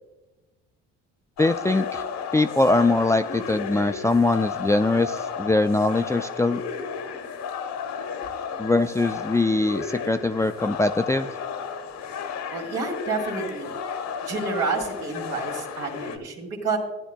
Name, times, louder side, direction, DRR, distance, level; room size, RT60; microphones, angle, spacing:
sound 1, 1.4-16.2, left 6 dB, 60° left, 1.0 m, -33 dB
voice 1, 1.4-2.0 2.3-6.6 8.6-11.3, left 2 dB, 10° left, 8 dB, 0.4 m, -22 dB
voice 2, 12.5-13.7 14.2-16.8, right 4 dB, 75° right, 0 dB, 2.3 m, -29 dB
15.0 x 10.0 x 2.2 m, 1.2 s
hypercardioid pair, 65°, 31 cm